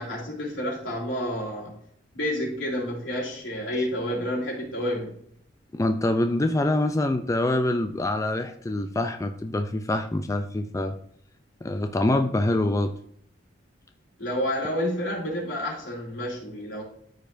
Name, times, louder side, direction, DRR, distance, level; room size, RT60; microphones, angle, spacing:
voice 1, 0.0-1.7 2.1-5.1 14.2-16.8, equal, 80° left, -3 dB, 3.5 m, -29 dB
voice 2, 5.7-11.0 11.6-12.9, left 1 dB, 15° left, 7 dB, 0.4 m, -25 dB
13.0 x 5.2 x 2.6 m, 0.67 s
head